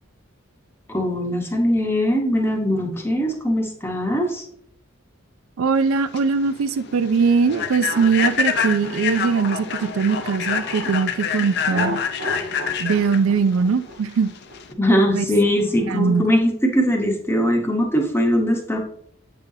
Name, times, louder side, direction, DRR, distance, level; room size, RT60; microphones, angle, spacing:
voice 1, 0.9-4.4 14.8-18.8, equal, 10° left, 0.9 m, -21 dB
voice 2, 5.6-12.0 12.8-14.3 15.1-15.2 15.9-16.3, right 5 dB, 80° right, 0.4 m, -21 dB
Human voice / Train, 5.8-14.7, left 6 dB, 50° left, 0.5 m, -27 dB
sound 1, 7.4-11.0 11.6-16.2, right 1 dB, 60° right, 1.0 m, -34 dB
8.1 x 5.5 x 2.7 m
head